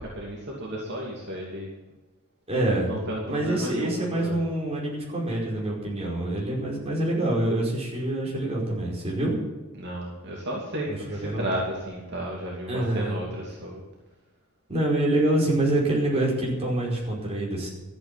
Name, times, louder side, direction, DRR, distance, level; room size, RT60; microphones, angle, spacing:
voice 1, 0.0-1.7 2.8-4.4 9.8-13.8, right 1 dB, 55° right, -3 dB, 2.8 m, -33 dB
voice 2, 2.5-9.3 10.9-11.5 12.7-13.2 14.7-17.7, right 1 dB, 30° right, -3 dB, 5.1 m, -26 dB
13.5 x 8.7 x 9.2 m, 1.2 s
head